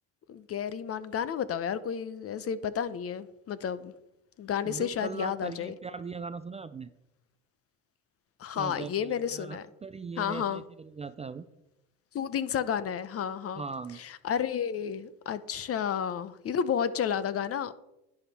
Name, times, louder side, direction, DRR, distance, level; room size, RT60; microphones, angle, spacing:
voice 1, 0.3-3.9 4.4-5.7 8.4-9.7 10.2-10.6 12.1-13.6 14.0-17.7, left 8 dB, 35° left, 15 dB, 0.8 m, -31 dB
voice 2, 4.6-6.9 8.5-11.5 13.6-14.0, right 5 dB, 15° right, 11 dB, 0.4 m, -39 dB
10.5 x 10.0 x 4.3 m, 0.89 s
supercardioid pair, 90°, 39 cm